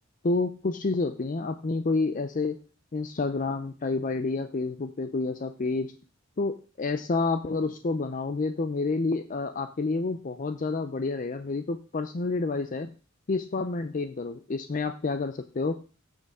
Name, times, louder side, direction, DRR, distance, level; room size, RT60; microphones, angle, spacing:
voice 1, 0.2-2.6 2.9-5.9 6.4-12.9 13.3-15.8, left 3 dB, 40° left, 9 dB, 0.5 m, -29 dB
15.5 x 6.5 x 3.6 m, 0.37 s
head